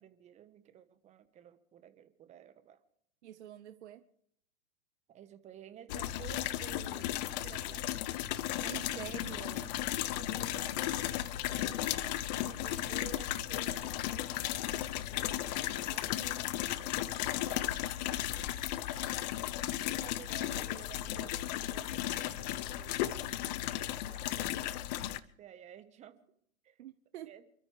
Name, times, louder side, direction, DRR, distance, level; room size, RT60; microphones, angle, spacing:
voice 1, 0.0-2.8 5.1-8.2 8.9-9.4 10.1-17.6 19.8-25.1 25.4-26.1 26.6-26.8 27.2-27.4, right 10 dB, 15° right, 10 dB, 1.2 m, -54 dB
voice 2, 3.2-4.0 8.6-9.7 26.8-27.3, right 12 dB, 55° right, 10 dB, 1.0 m, -46 dB
sound 1, 5.9-25.2, left 14 dB, 30° left, 0.7 m, -35 dB
28.5 x 13.0 x 3.3 m, 0.68 s
hypercardioid pair, 130°, 41 cm